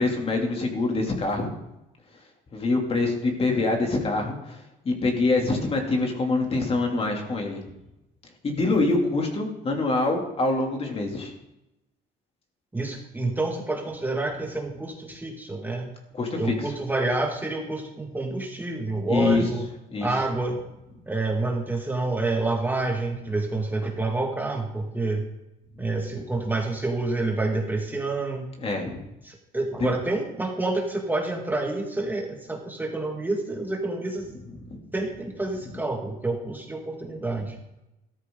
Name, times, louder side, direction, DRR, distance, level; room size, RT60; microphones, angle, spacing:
voice 1, 0.0-1.5 2.5-7.6 8.4-11.3 16.1-16.7 19.1-19.4 19.9-20.1 28.6-29.0 29.8-29.9 34.7-34.8, left 3 dB, 35° left, 2 dB, 2.9 m, -25 dB
voice 2, 12.7-15.9 16.3-19.7 20.0-20.6 21.1-25.3 25.8-28.5 29.2-34.3 34.9-37.6, right 2 dB, 10° right, 1 dB, 1.9 m, -28 dB
14.0 x 13.0 x 3.9 m, 0.92 s
cardioid pair, 110°, 17 cm